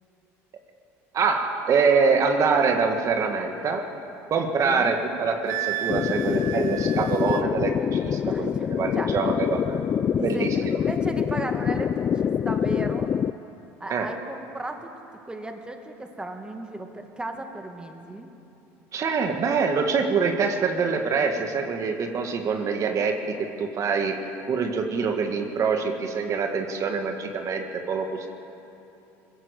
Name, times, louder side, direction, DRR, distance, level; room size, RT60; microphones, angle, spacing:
voice 1, 1.1-3.9 4.3-9.8 10.2-10.6 13.9-14.1 18.9-24.2 24.5-28.3, right 5 dB, 45° right, 4 dB, 1.8 m, -25 dB
voice 2, 4.6-5.0 8.2-8.7 9.0-9.1 10.2-10.5 10.8-13.1 13.8-14.9 15.3-18.3, right 2 dB, 10° right, 4 dB, 2.2 m, -35 dB
Wind instrument woodwind instrument, 5.5-7.5, right 14 dB, 75° right, 0.5 m, -33 dB
sound 1, 5.9-13.3, left 8 dB, 35° left, 0.4 m, -25 dB
21.0 x 15.0 x 8.2 m, 3.0 s
supercardioid pair, 85°, 7 cm